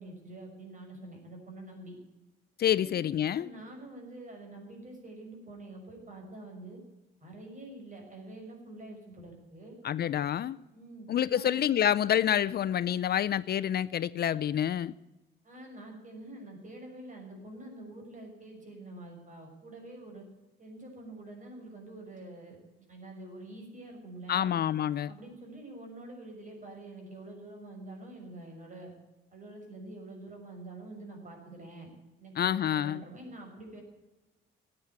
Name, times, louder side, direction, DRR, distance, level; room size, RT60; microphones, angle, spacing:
voice 1, 0.0-2.0 2.8-3.0 3.3-6.8 7.2-9.8 10.7-11.6 15.4-20.2 20.6-24.6 25.1-28.9 29.3-31.9 32.2-33.8, right 2 dB, 40° right, 2 dB, 6.1 m, -46 dB
voice 2, 2.6-3.5 9.8-10.6 11.1-14.9 24.3-25.1 32.4-33.0, left 10 dB, 55° left, 17 dB, 0.5 m, -28 dB
14.0 x 8.9 x 9.2 m, 1.1 s
cardioid pair, 90°, 20 cm